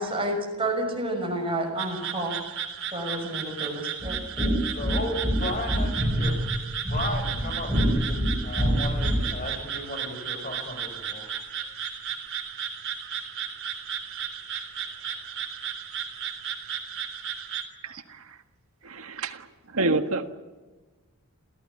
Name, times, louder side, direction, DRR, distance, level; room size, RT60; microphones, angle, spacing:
voice 1, 0.0-2.4 2.9-4.2, right 1 dB, 25° right, 2 dB, 6.1 m, -30 dB
sound 1, 1.8-17.6, right 8 dB, 60° right, 3.6 m, -34 dB
sound 2, 4.0-9.4, equal, 5° left, 6.3 m, -26 dB
voice 2, 4.7-6.4 6.8-11.3, left 1 dB, 40° left, 5 dB, 6.4 m, -35 dB
voice 3, 17.8-18.2 18.8-20.3, right 2 dB, 80° right, 7 dB, 1.8 m, -28 dB
29.5 x 15.0 x 9.7 m, 1.3 s
head